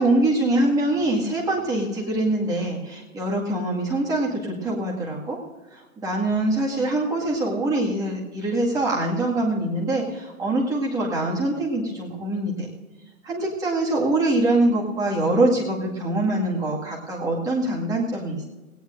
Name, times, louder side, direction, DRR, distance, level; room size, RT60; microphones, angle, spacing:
voice 1, 0.0-5.4 5.7-12.7 13.2-18.4, right 2 dB, 10° right, -3 dB, 2.0 m, -24 dB
19.0 x 18.0 x 2.6 m, 1.2 s
hypercardioid pair, 150°, 44 cm